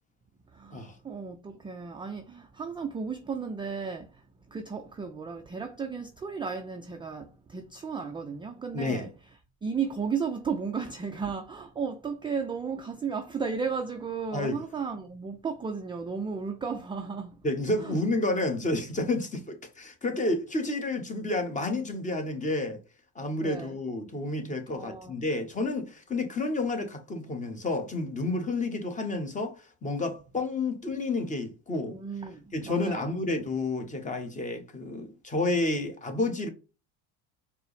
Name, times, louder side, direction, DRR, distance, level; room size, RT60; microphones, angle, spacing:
voice 1, 0.5-9.1 9.6-17.4 17.8-17.9 23.4-23.8 24.7-25.2 31.9-33.1, right 5 dB, 15° right, 0.3 m, -34 dB
voice 2, 8.7-9.1 14.3-14.6 17.4-22.8 23.1-29.6 29.8-32.0 32.5-36.5, left 2 dB, 20° left, 0.9 m, -30 dB
4.4 x 2.0 x 3.1 m
supercardioid pair, 100°, 36 cm